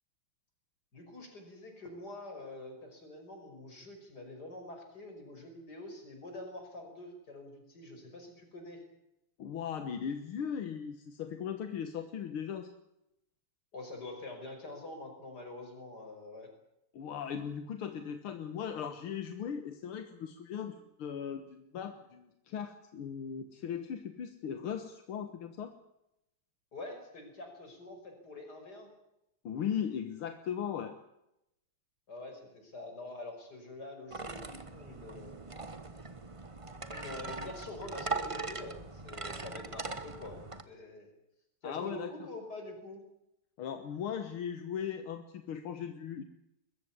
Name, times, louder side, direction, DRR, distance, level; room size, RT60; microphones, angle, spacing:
voice 1, 0.9-8.8 13.7-16.5 26.7-28.9 32.1-35.4 36.9-41.1 41.6-43.0, left 2 dB, 50° left, 4 dB, 6.0 m, -46 dB
voice 2, 9.4-12.7 16.9-25.7 29.4-31.0 41.6-42.1 43.6-46.2, left 8 dB, 80° left, 8 dB, 2.2 m, -38 dB
sound 1, 34.1-40.6, right 3 dB, 20° right, 0.9 m, -40 dB
21.5 x 15.5 x 9.8 m, 0.85 s
omnidirectional pair, 2.3 m